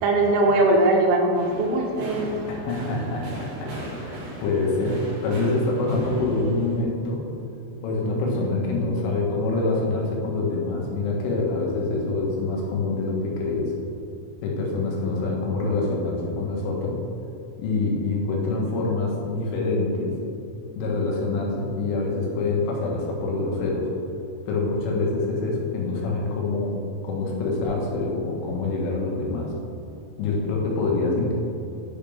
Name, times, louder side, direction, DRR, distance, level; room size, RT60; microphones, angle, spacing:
voice 1, 0.0-2.3, right 2 dB, 85° right, 0 dB, 3.6 m, -20 dB
sound 1, 1.3-6.8, right 1 dB, 60° right, 3.4 m, -36 dB
voice 2, 2.5-3.7 4.0-7.3 7.8-13.7 14.4-17.0 17.6-20.2 20.8-23.9 24.5-26.8 27.0-29.5 30.2-31.3, left 3 dB, 85° left, -2 dB, 3.8 m, -25 dB
8.9 x 6.6 x 3.4 m, 2.8 s
omnidirectional pair, 5.5 m